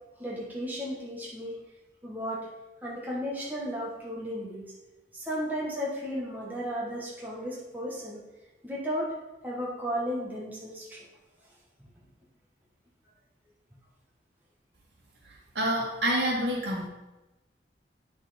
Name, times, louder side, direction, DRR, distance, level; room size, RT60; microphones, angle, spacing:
voice 1, 0.2-1.6 2.0-2.5 2.8-4.7 5.1-8.2 8.6-9.1 9.4-11.1, equal, 10° right, -5 dB, 1.8 m, -34 dB
voice 2, 15.5-16.9, right 1 dB, 75° right, -1 dB, 2.1 m, -27 dB
8.7 x 6.3 x 5.3 m, 1.1 s
head